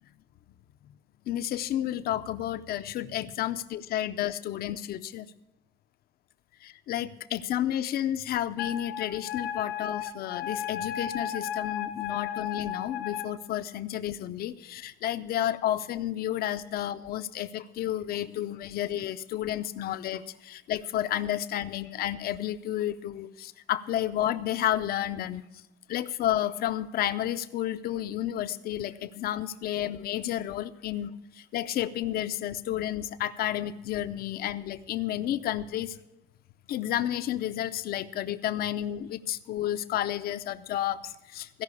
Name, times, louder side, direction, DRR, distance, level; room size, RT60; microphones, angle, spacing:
voice 1, 1.3-5.3 6.6-25.4 25.9-36.0 36.7-41.6, left 12 dB, 50° left, 12 dB, 0.6 m, -31 dB
Wind instrument woodwind instrument, 8.6-13.3, left 9 dB, 80° left, 1.2 m, -34 dB
15.0 x 5.7 x 8.3 m, 0.94 s
cardioid pair, 160°, 20 cm